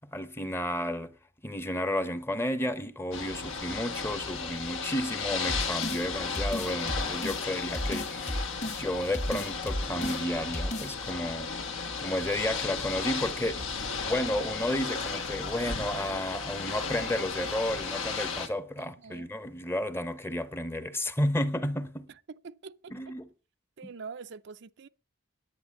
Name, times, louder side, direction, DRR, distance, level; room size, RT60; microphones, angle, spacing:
voice 1, 0.1-1.2 1.4-8.4 8.8-11.5 12.0-22.1 22.9-23.3, left 1 dB, 10° left, 0.8 m, -32 dB
Ocean / Boat Water vehicle, 3.1-18.5, left 5 dB, 75° left, 1.7 m, -34 dB
sound 1, 5.5-6.0 6.4-7.4 7.7-8.8 9.1-10.2 10.5-10.9, equal, 35° left, 1.5 m, -33 dB
voice 2, 22.4-23.1 23.8-24.9, right 5 dB, 60° right, 0.5 m, -44 dB
10.5 x 8.9 x 7.2 m
head